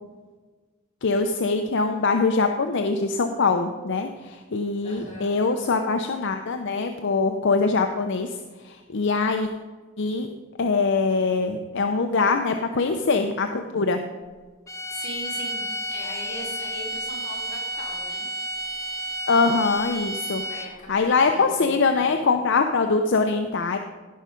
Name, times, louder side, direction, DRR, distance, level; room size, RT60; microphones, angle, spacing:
voice 1, 1.0-8.4 8.6-9.5 10.0-10.3 10.6-14.0 19.3-20.4 20.9-23.8, left 4 dB, 60° left, 5 dB, 0.6 m, -23 dB
voice 2, 4.8-5.4 14.9-15.6 15.9-18.3 20.5-22.2, left 1 dB, 35° left, -5 dB, 4.2 m, -40 dB
sound 1, 14.7-20.9, right 1 dB, 15° left, 0.9 m, -31 dB
16.5 x 5.6 x 5.2 m, 1.4 s
head